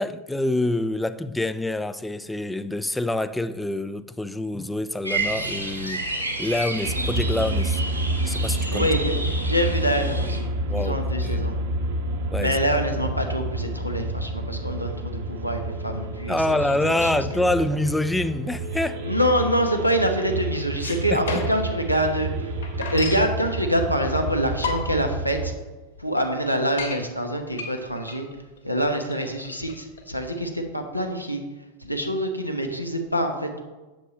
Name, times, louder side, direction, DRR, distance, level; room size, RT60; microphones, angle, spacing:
voice 1, 0.0-6.1 6.4-7.8 8.2-8.9 10.7-11.5 12.3-12.6 16.3-19.0 21.1-21.5, left 1 dB, 5° left, 0.3 m, -26 dB
sound 1, 5.0-10.4, right 2 dB, 90° right, 1.9 m, -30 dB
sound 2, 6.8-25.5, right 1 dB, 50° right, 0.9 m, -29 dB
voice 2, 8.7-11.6 12.4-17.1 17.6-17.7 19.0-22.5 22.9-25.5 26.0-28.3 28.6-31.4 31.8-33.6, equal, 90° left, 1.0 m, -25 dB
sound 3, 20.6-21.8 22.1-22.2 22.4-23.3 24.0-24.1 24.5-25.1 25.6-25.7 26.0-26.1 26.4-27.0 27.5-30.4, left 4 dB, 70° left, 1.3 m, -32 dB
7.8 x 7.1 x 4.2 m
figure-of-eight pair, 90°, 0 cm